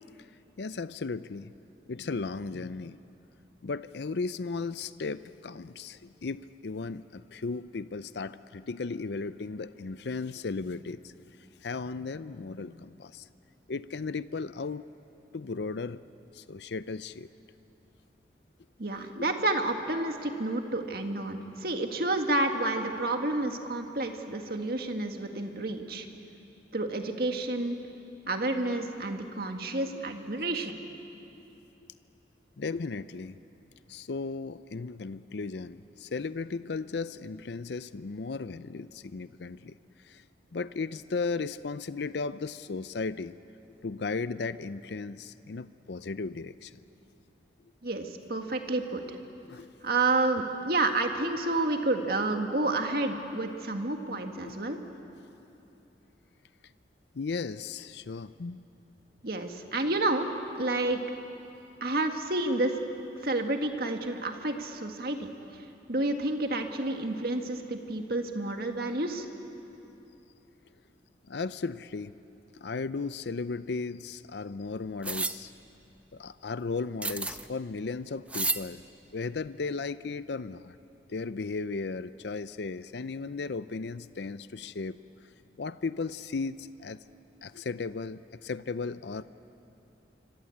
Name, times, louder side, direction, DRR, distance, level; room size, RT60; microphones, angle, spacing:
voice 1, 0.6-1.5 1.9-3.0 3.6-11.1 11.6-13.3 13.7-14.8 15.3-16.0 16.3-17.3 19.2-19.3 31.3-31.4 32.6-33.4 33.9-40.2 40.5-43.4 43.8-46.7 49.5-49.7 54.4-54.5 57.1-58.6 71.3-72.1 72.6-75.5 76.1-78.8 79.1-80.8 81.1-85.0 85.6-87.0 87.4-89.2, left 4 dB, 65° left, 14 dB, 0.5 m, -35 dB
voice 2, 18.8-26.1 26.7-27.8 28.3-30.8 47.8-49.0 49.8-54.8 59.2-60.3 60.6-61.0 61.8-62.8 63.2-69.3, right 2 dB, 55° right, 4 dB, 1.9 m, -30 dB
sound 1, 75.0-75.4 77.0-77.5 78.3-78.6, right 3 dB, 5° right, 0.5 m, -31 dB
26.5 x 25.5 x 8.6 m, 2.8 s
head